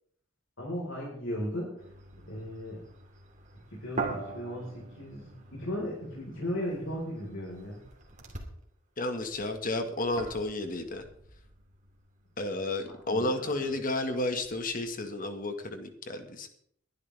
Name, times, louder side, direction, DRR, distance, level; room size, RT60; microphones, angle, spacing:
voice 1, 0.6-1.9 2.3-2.8 3.7-7.8 12.9-13.6, equal, 75° left, -4 dB, 4.7 m, -36 dB
sound 1, 1.8-8.6 9.1-14.8, right 3 dB, 40° right, 2.7 m, -44 dB
voice 2, 9.0-11.1 12.4-16.5, left 2 dB, 45° left, 6 dB, 1.8 m, -32 dB
21.5 x 11.5 x 3.5 m, 0.67 s
head